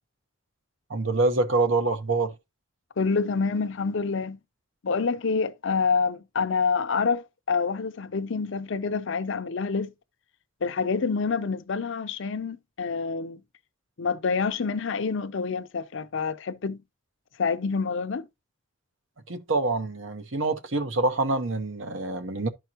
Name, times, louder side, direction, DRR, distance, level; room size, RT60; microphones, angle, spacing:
voice 1, 0.9-2.3 19.3-22.5, right 3 dB, 65° right, 1.1 m, -26 dB
voice 2, 3.0-4.4 4.8-9.9 10.6-13.4 14.0-16.8 17.4-18.3, left 5 dB, 65° left, 0.6 m, -27 dB
12.0 x 4.6 x 2.9 m
head